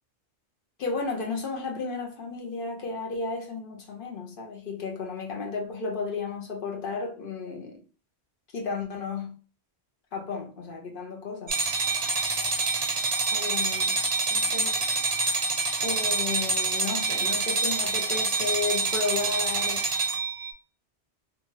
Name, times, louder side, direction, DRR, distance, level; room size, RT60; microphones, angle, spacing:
voice 1, 0.8-7.8 8.5-9.4 10.1-11.6 13.3-14.0 14.3-15.0 15.8-19.9, left 4 dB, 55° left, 0.9 m, -33 dB
sound 1, 11.5-20.5, right 3 dB, 45° right, 0.6 m, -26 dB
2.7 x 2.4 x 3.0 m
omnidirectional pair, 1.1 m